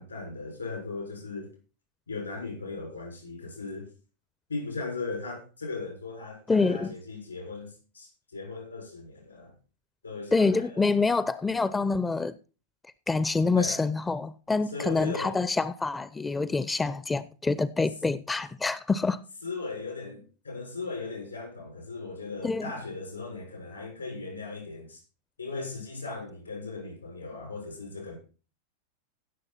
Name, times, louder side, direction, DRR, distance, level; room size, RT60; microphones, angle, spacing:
voice 1, 0.0-1.5 2.1-3.9 4.5-9.5 10.0-10.8 13.5-13.8 14.7-15.3 19.4-25.0 25.4-28.2, left 3 dB, 80° left, 6.2 m, -38 dB
voice 2, 6.5-6.9 10.3-12.3 13.1-19.2 22.4-22.7, left 3 dB, 10° left, 0.5 m, -26 dB
16.5 x 6.7 x 4.2 m
figure-of-eight pair, 90°, 0 cm